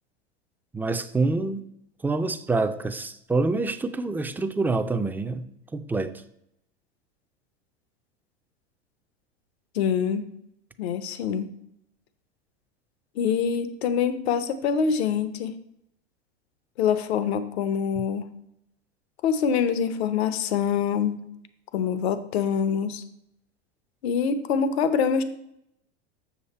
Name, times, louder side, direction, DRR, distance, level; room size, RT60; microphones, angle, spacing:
voice 1, 0.7-1.6 2.0-5.4 5.7-6.1, right 3 dB, 5° right, 9 dB, 0.4 m, -26 dB
voice 2, 9.7-10.3 10.8-11.5 13.2-15.5 16.8-18.3 19.2-21.3 21.7-23.0 24.0-25.2, left 7 dB, 70° left, 12 dB, 0.9 m, -25 dB
7.2 x 6.4 x 4.2 m, 0.78 s
hypercardioid pair, 95°, 33 cm